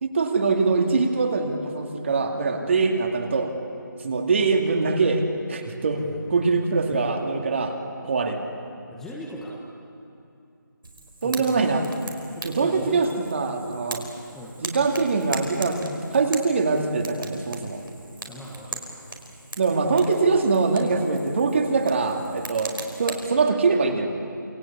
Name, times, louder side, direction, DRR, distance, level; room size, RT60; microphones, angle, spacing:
voice 1, 0.0-3.5 4.0-6.0 6.3-7.7 8.0-8.4 11.2-11.8 12.4-14.0 14.6-17.8 19.6-24.1, right 4 dB, 35° right, 3 dB, 2.4 m, -23 dB
voice 2, 8.9-9.6 11.2-11.7 12.3-13.2 14.3-14.6 18.2-18.8, left 1 dB, 5° left, -4 dB, 1.3 m, -39 dB
Fire, 10.8-23.3, right 2 dB, 90° right, 5.1 m, -40 dB
28.5 x 21.0 x 8.5 m, 2.7 s
figure-of-eight pair, 170°, 11 cm